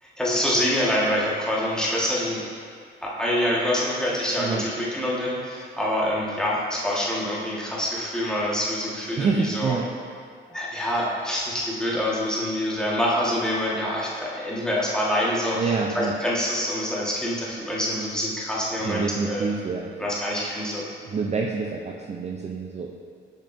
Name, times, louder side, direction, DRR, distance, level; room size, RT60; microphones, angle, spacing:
voice 1, 0.0-2.4 3.0-9.8 10.5-19.5 20.0-20.8, equal, 5° left, -6 dB, 1.4 m, -26 dB
voice 2, 4.4-4.7 9.2-9.9 15.5-16.2 18.8-19.9 21.0-22.9, right 4 dB, 35° right, 0 dB, 0.4 m, -27 dB
7.0 x 5.4 x 2.6 m, 2.1 s
cardioid pair, 90°, 20 cm